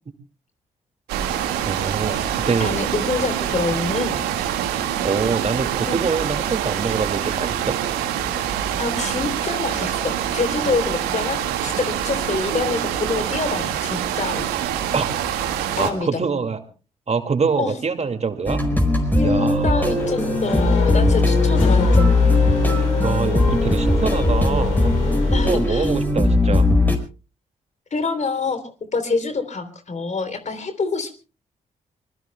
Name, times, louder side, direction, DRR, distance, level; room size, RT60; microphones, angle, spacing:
sound 1, 1.1-15.9, right 10 dB, 80° right, 1.9 m, -25 dB
voice 1, 1.6-2.2 2.5-2.7 5.0-7.8 14.9-15.1 15.8-16.6 17.1-18.6 19.2-20.0 23.0-26.7, right 5 dB, 40° right, 8 dB, 2.3 m, -25 dB
voice 2, 2.6-4.2 5.9-6.0 8.8-14.5 15.8-16.2 17.6-17.7 19.2-22.1 25.3-25.9 27.9-31.1, left 4 dB, 45° left, 9 dB, 3.3 m, -26 dB
sound 2, 18.5-27.0, left 2 dB, 10° left, 5.1 m, -18 dB
Race car auto racing / Accelerating revving vroom, 19.3-26.0, left 5 dB, 85° left, 3.5 m, -30 dB
26.0 x 21.0 x 2.3 m, 0.35 s
hypercardioid pair, 40°, 17 cm